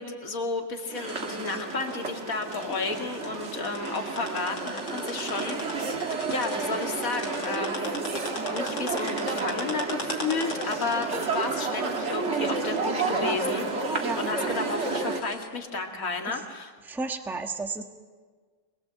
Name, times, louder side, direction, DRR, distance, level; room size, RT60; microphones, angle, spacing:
voice 1, 0.0-6.0 6.3-8.0 8.5-16.7, left 3 dB, 40° left, 3 dB, 2.7 m, -32 dB
sound 1, 0.9-15.2, right 4 dB, 35° right, 1.8 m, -31 dB
sound 2, 1.1-15.5, left 3 dB, 70° left, 3.5 m, -40 dB
voice 2, 16.9-17.8, right 3 dB, ahead, 5 dB, 1.0 m, -32 dB
25.5 x 21.0 x 7.8 m, 1.5 s
omnidirectional pair, 2.3 m